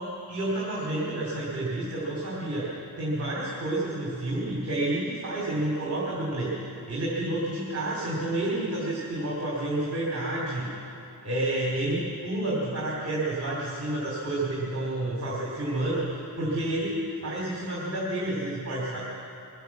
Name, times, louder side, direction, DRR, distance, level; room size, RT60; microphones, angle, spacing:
voice 1, 0.0-2.7 3.0-10.7 11.2-19.0, right 1 dB, 40° right, -5 dB, 3.0 m, -30 dB
21.5 x 9.2 x 7.3 m, 2.6 s
wide cardioid pair, 145°, 39 cm